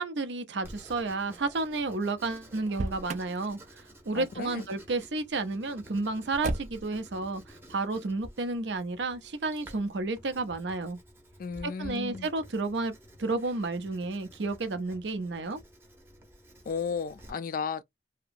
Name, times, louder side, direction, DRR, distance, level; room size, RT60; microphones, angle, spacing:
voice 1, 0.0-11.0 11.6-12.9 13.2-15.6, right 3 dB, 80° right, 0.6 m, -31 dB
Writing, 0.6-17.3, equal, 15° right, 0.7 m, -52 dB
Motor vehicle (road), 2.7-3.4 6.4-7.0, right 3 dB, 40° right, 0.3 m, -33 dB
voice 2, 4.1-4.6 11.4-12.3 16.7-17.8, left 6 dB, 50° left, 0.3 m, -34 dB
2.8 x 2.1 x 2.5 m
head